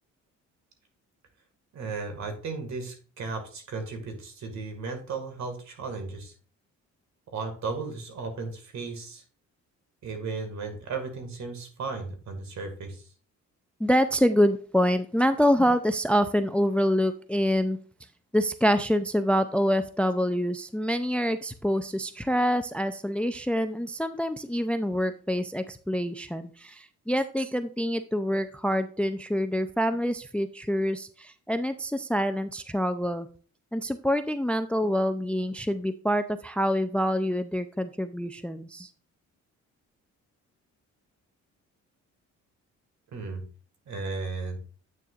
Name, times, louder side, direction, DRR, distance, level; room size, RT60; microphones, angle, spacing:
voice 1, 1.7-6.3 7.3-9.2 10.0-13.1 43.1-43.4 43.9-44.6, right 4 dB, 65° right, 6 dB, 1.9 m, -35 dB
voice 2, 13.8-17.8 18.3-33.3 33.7-38.9, equal, 5° left, 10 dB, 0.4 m, -26 dB
8.6 x 6.6 x 2.4 m, 0.40 s
cardioid pair, 90°, 30 cm